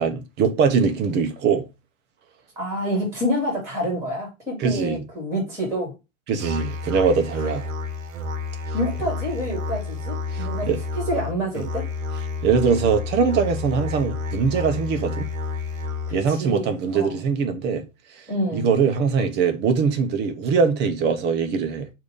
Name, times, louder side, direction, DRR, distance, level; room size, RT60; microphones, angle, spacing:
voice 1, 0.0-1.7 4.6-5.0 6.3-7.7 10.3-10.8 12.4-15.3 16.1-17.8 18.1-18.2 18.5-21.9, right 5 dB, 25° right, 0.8 m, -22 dB
voice 2, 2.6-5.9 7.3-7.5 8.7-10.7 10.9-11.9 16.1-17.2 18.3-18.7, equal, 5° right, 2.8 m, -28 dB
Musical instrument, 6.4-16.4, left 4 dB, 80° right, 1.0 m, -30 dB
6.6 x 2.8 x 5.2 m
supercardioid pair, 145°, 39 cm